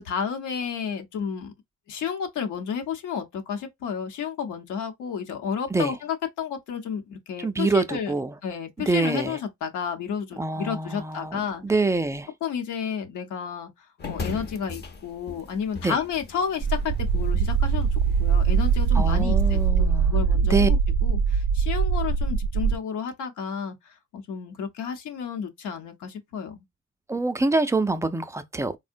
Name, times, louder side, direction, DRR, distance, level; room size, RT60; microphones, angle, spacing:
voice 1, 0.0-1.5 1.9-8.1 8.4-11.6 12.4-13.7 14.1-26.6, left 7 dB, 85° left, 0.8 m, -31 dB
voice 2, 7.4-8.3 8.8-9.4 10.4-12.3 15.8-16.0 18.9-20.2 20.5-20.7 27.1-28.8, right 3 dB, 10° right, 0.4 m, -25 dB
sound 1, 14.0-19.7, left 3 dB, 35° left, 0.6 m, -39 dB
sound 2, 16.6-22.8, right 6 dB, 65° right, 0.5 m, -22 dB
3.5 x 2.1 x 2.5 m
cardioid pair, 90°, 30 cm